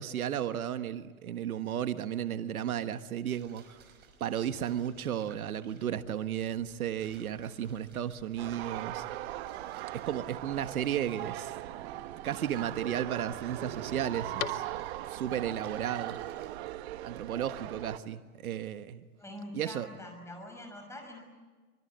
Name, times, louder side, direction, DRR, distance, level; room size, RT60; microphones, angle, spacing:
voice 1, 0.0-3.9 4.2-9.0 9.9-11.5 11.8-11.9 12.2-14.6 15.1-16.2 17.0-19.0 19.5-19.9, right 10 dB, 80° right, 10 dB, 1.5 m, -34 dB
sound 1, 3.3-16.9, right 6 dB, 25° right, 5.4 m, -60 dB
sound 2, 6.7-15.2, left 9 dB, 75° left, 1.9 m, -49 dB
sound 3, 8.4-18.0, right 14 dB, 45° right, 1.3 m, -40 dB
voice 2, 19.2-21.2, left 1 dB, 5° left, 4 dB, 6.0 m, -44 dB
25.0 x 24.5 x 9.3 m, 1.4 s
hypercardioid pair, 140°, 43 cm